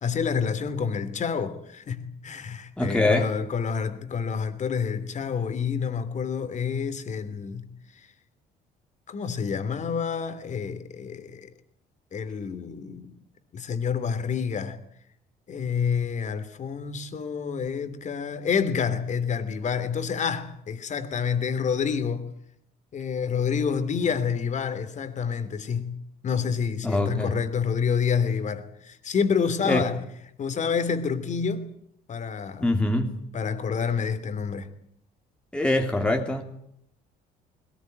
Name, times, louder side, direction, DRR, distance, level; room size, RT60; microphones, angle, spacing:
voice 1, 0.0-8.1 9.1-11.5 12.1-13.1 13.5-14.8 15.5-22.3 22.9-30.0 30.4-31.7 32.1-32.7 33.3-34.7, left 6 dB, 45° left, 2.9 m, -28 dB
voice 2, 2.8-3.3 26.8-27.3 29.6-29.9 32.6-33.2 35.5-36.4, left 2 dB, 5° left, 2.9 m, -23 dB
21.0 x 19.0 x 9.3 m
cardioid pair, 110°, 17 cm